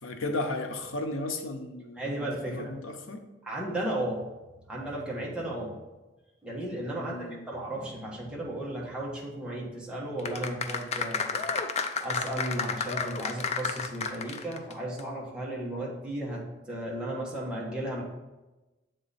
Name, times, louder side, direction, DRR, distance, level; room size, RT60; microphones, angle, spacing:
voice 1, 0.0-3.2 6.9-7.5, left 2 dB, 75° left, 5 dB, 0.8 m, -35 dB
voice 2, 2.0-2.7 3.4-4.3 4.7-5.8 6.4-7.2 7.5-11.4 12.0-18.0, right 1 dB, 5° right, -5 dB, 1.3 m, -34 dB
sound 1, 10.2-14.7 15.0-15.1, left 5 dB, 35° left, 0.4 m, -31 dB
7.8 x 3.8 x 4.1 m, 1.1 s
head